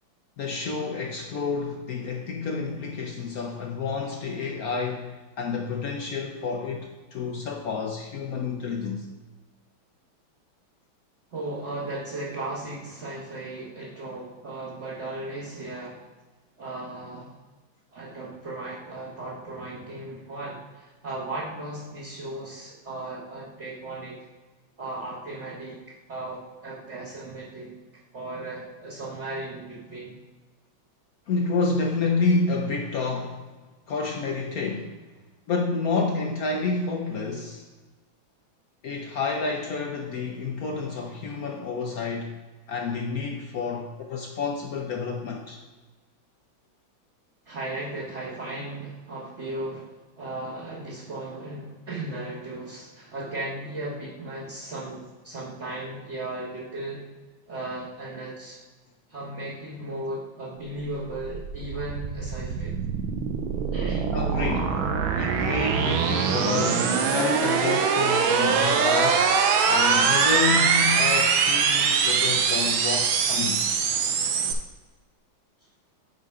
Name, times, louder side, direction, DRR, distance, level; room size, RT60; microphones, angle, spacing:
voice 1, 0.4-9.1 31.3-33.5 33.9-34.9 35.5-37.7 38.8-42.4 42.7-45.6 64.1-64.8 65.1-69.4 69.7-73.6, left 4 dB, 65° left, 2 dB, 0.9 m, -29 dB
voice 2, 11.3-16.0 16.6-17.3 17.9-24.2 24.8-25.8 26.1-27.7 28.1-30.1 47.5-57.0 57.5-58.6 59.1-62.7 63.7-64.1 73.9-74.1, right 2 dB, 35° right, -8 dB, 1.7 m, -36 dB
sound 1, 60.9-74.5, right 6 dB, 85° right, 1.5 m, -23 dB
8.7 x 4.1 x 4.8 m, 1.3 s
omnidirectional pair, 2.2 m